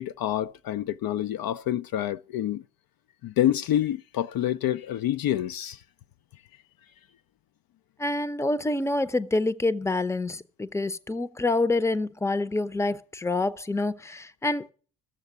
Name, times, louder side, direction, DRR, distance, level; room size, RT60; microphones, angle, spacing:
voice 1, 0.0-2.6 3.2-5.8, left 12 dB, 50° left, 0.5 m, -27 dB
voice 2, 8.0-14.7, left 2 dB, 5° left, 0.7 m, -27 dB
14.0 x 7.1 x 8.0 m
supercardioid pair, 65°, 47 cm